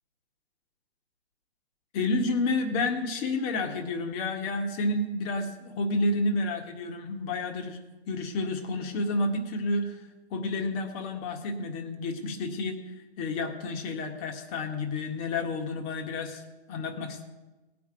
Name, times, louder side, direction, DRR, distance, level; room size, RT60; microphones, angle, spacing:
voice 1, 1.9-7.8 8.1-16.4 16.7-17.2, left 2 dB, 35° left, 4 dB, 1.8 m, -30 dB
18.0 x 6.0 x 9.1 m, 1.2 s
hypercardioid pair, 130°, 31 cm